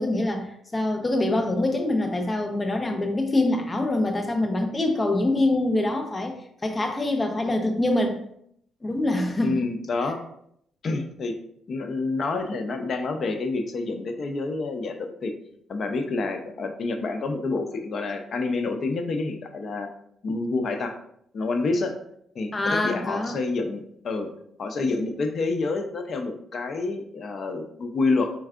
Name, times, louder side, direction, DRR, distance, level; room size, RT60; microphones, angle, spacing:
voice 1, 0.0-6.3 6.6-8.2 8.8-9.7 22.5-23.4, left 2 dB, 25° left, 4 dB, 0.8 m, -25 dB
voice 2, 9.4-10.2 10.8-11.3 11.7-15.3 15.7-19.9 20.2-20.9 21.3-21.9 22.3-24.3 24.6-28.3, left 3 dB, 50° left, 6 dB, 0.6 m, -28 dB
4.6 x 4.4 x 2.5 m, 0.70 s
cardioid pair, 90°, 0 cm